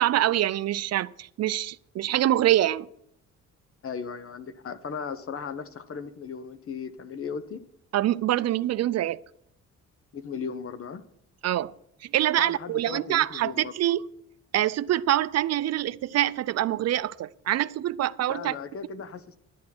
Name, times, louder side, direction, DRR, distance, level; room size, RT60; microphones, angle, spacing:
voice 1, 0.0-2.9 7.9-9.2 11.4-11.7 12.0-14.0 14.5-18.5, right 13 dB, 60° right, 0.4 m, -25 dB
voice 2, 3.8-7.6 10.1-11.0 12.4-13.7 18.3-19.4, left 6 dB, 45° left, 1.1 m, -36 dB
11.5 x 8.4 x 6.0 m
cardioid pair, 90°, 30 cm